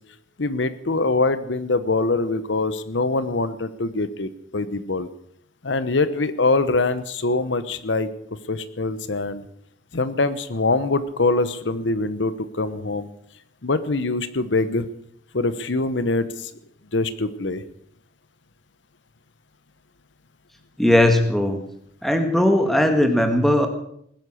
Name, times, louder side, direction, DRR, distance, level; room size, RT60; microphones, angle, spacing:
voice 1, 0.4-5.1 5.6-8.1 8.5-9.4 9.9-13.1 13.6-14.9 15.3-16.5 16.9-17.6, left 3 dB, 75° left, 13 dB, 1.0 m, -23 dB
voice 2, 20.8-21.6 22.0-23.7, left 1 dB, ahead, 5 dB, 1.8 m, -18 dB
19.5 x 10.5 x 6.4 m, 0.71 s
head